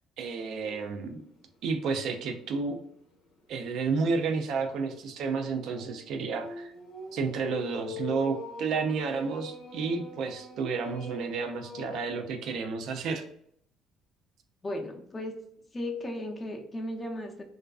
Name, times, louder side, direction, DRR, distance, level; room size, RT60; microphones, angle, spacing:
voice 1, 0.2-1.2 1.6-2.8 3.5-6.7 7.1-13.2, right 4 dB, 65° right, 5 dB, 0.3 m, -31 dB
sound 1, 0.6-0.9 1.4-1.5 1.9-2.0 4.0-12.0, left 3 dB, 75° left, 0.7 m, -43 dB
voice 2, 14.6-15.3 15.7-17.4, left 1 dB, 30° left, 2 dB, 0.6 m, -35 dB
2.4 x 2.2 x 2.3 m, 0.68 s
hypercardioid pair, 65°, 0 cm